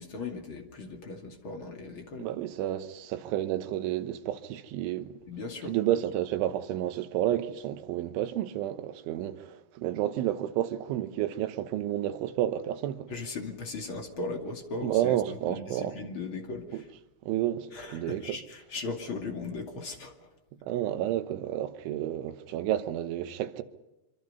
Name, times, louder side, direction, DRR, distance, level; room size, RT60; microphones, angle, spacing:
voice 1, 0.0-2.3 5.3-5.7 13.1-16.9 17.7-20.3, left 3 dB, 35° left, 2.4 m, -38 dB
voice 2, 2.2-5.2 5.7-13.1 14.8-16.0 16.7-16.8 17.3-18.4 20.6-23.6, right 12 dB, 85° right, 3.5 m, -30 dB
25.5 x 24.5 x 5.5 m
omnidirectional pair, 5.3 m